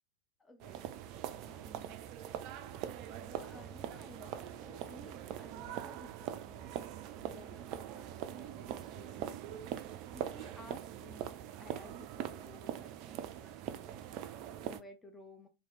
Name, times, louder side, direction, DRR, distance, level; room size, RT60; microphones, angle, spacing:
voice 1, 0.4-1.0 1.4-2.0 3.2-9.4 9.8-11.3 11.6-15.5, left 1 dB, 10° left, 0.5 m, -56 dB
sound 1, 0.6-14.8, right 10 dB, 40° right, 0.3 m, -43 dB
2.8 x 2.7 x 3.1 m
figure-of-eight pair, 90°, 0 cm